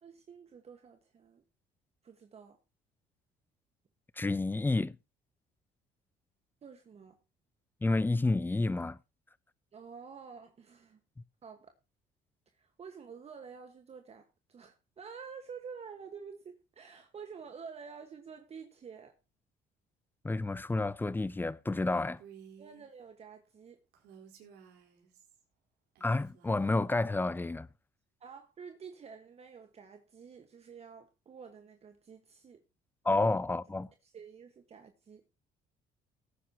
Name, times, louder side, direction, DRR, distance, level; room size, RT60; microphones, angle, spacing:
voice 1, 0.0-1.4 2.0-2.6 6.6-7.2 9.7-11.0 11.4-11.7 12.6-19.1 22.6-23.8 28.2-32.6 33.0-33.2 34.0-35.2, right 6 dB, 40° right, 1.5 m, -49 dB
voice 2, 4.2-5.0 7.8-9.0 20.2-22.2 26.0-27.7 33.0-33.9, left 2 dB, 10° left, 0.5 m, -30 dB
Female speech woman speaking, 22.2-22.9 23.9-25.4 25.9-26.8, right 7 dB, 85° right, 4.1 m, -55 dB
18.0 x 9.7 x 2.9 m
cardioid pair, 110°, 17 cm